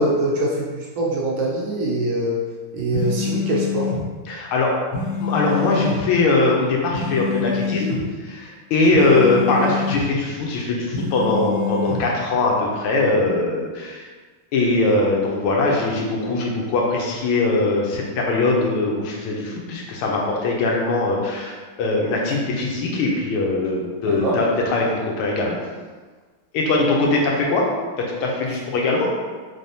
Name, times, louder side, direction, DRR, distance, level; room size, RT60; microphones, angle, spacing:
voice 1, 0.0-2.4 2.7-4.0 24.1-24.4, right 1 dB, 75° right, -3 dB, 1.3 m, -23 dB
sound 1, 2.9-4.0 4.9-6.0 6.9-8.0 8.9-10.0 10.9-12.0, left 5 dB, 55° left, 1.1 m, -26 dB
voice 2, 4.3-4.8 5.2-7.9 8.2-14.1 14.5-25.6 26.5-27.7 28.0-29.1, left 2 dB, 80° left, -2 dB, 1.5 m, -21 dB
3.9 x 3.4 x 2.7 m, 1.4 s
omnidirectional pair, 2.4 m